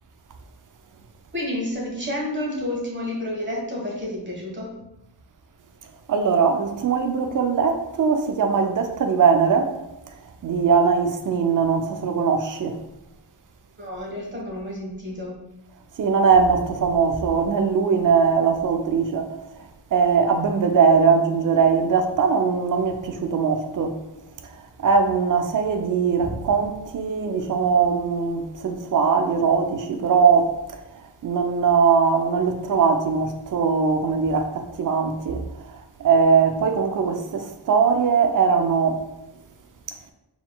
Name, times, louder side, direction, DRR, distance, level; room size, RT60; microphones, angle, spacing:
voice 1, 1.3-4.7 13.8-15.4, left 1 dB, 25° right, 1.3 m, -30 dB
voice 2, 6.1-9.7 10.4-12.8 16.0-19.3 19.9-23.9 24.8-30.5 31.2-35.4 36.0-39.0, right 5 dB, 50° right, 0.5 m, -20 dB
4.5 x 3.8 x 2.2 m
wide cardioid pair, 120°, 42 cm